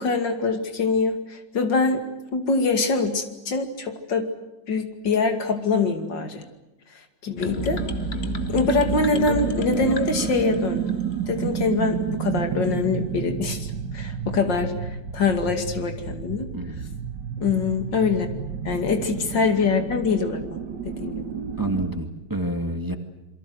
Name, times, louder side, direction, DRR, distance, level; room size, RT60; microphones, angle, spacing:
voice 1, 0.0-2.0 2.3-4.3 4.7-6.4 7.2-7.8 8.5-16.5 17.4-18.3 18.6-20.6 20.8-21.3, left 4 dB, 75° left, 7 dB, 3.1 m, -24 dB
sound 1, 7.4-11.3, left 3 dB, 35° left, 1.6 m, -32 dB
sound 2, 7.6-22.0, right 8 dB, 70° right, 2.1 m, -31 dB
voice 2, 16.5-16.9 21.6-23.0, right 1 dB, 10° right, 7 dB, 2.0 m, -28 dB
27.5 x 23.5 x 7.9 m, 1.0 s
omnidirectional pair, 2.0 m